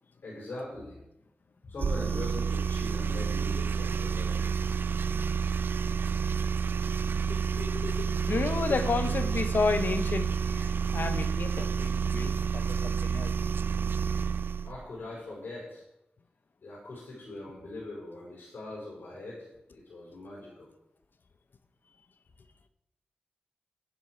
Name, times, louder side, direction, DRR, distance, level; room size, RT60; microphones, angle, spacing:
voice 1, 0.2-1.0 1.6-4.5 5.7-6.2 14.6-15.8 16.6-20.7, left 2 dB, 85° left, 4.9 m, -42 dB
sound 1, 1.8-14.8, right 6 dB, 75° right, 0.4 m, -29 dB
voice 2, 7.3-13.3, left 4 dB, 65° left, 0.8 m, -32 dB
10.5 x 10.0 x 4.8 m
cardioid pair, 50°, 4 cm